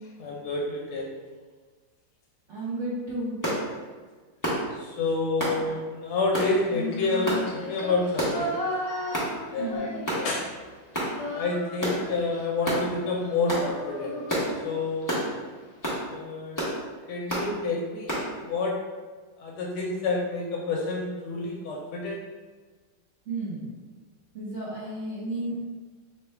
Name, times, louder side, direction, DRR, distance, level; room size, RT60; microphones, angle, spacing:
voice 1, 0.2-1.1 4.7-8.6 8.8-10.5 11.3-14.2 14.6-15.2 16.1-16.6 17.1-18.8 19.4-22.2, left 3 dB, 85° left, -1 dB, 1.4 m, -29 dB
voice 2, 2.5-3.4 9.6-9.9 23.2-23.7 24.3-25.6, right 1 dB, 60° right, -9 dB, 0.8 m, -32 dB
sound 1, 3.4-3.6 4.4-4.6 5.4-5.6 6.3-6.5 7.3-7.4 8.2-8.4 9.1-9.3 10.1-10.3 10.9-11.1 11.8-12.0 12.6-12.8 13.5-13.7 14.3-14.5 15.1-15.3 15.8-16.0 16.6-16.8 17.3-17.5 18.1-18.3, equal, 30° left, 0.3 m, -28 dB
Female singing, 6.6-10.5 10.8-15.1, left 2 dB, 70° left, 1.0 m, -35 dB
3.5 x 2.2 x 4.4 m, 1.4 s
omnidirectional pair, 2.3 m